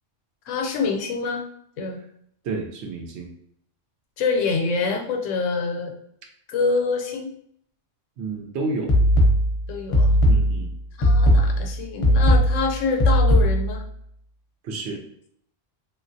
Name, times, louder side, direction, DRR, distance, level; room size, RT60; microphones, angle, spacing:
voice 1, 0.5-1.4 1.8-2.0 4.2-5.9 6.5-7.4 9.7-10.2 11.0-13.8, left 4 dB, 80° left, 3 dB, 0.9 m, -26 dB
voice 2, 2.4-3.3 8.2-8.9 10.3-10.7 14.6-15.0, right 3 dB, 70° right, 2 dB, 0.8 m, -30 dB
sound 1, 8.9-13.9, equal, 35° left, 0.6 m, -18 dB
3.1 x 2.4 x 2.6 m, 0.69 s
omnidirectional pair, 1.3 m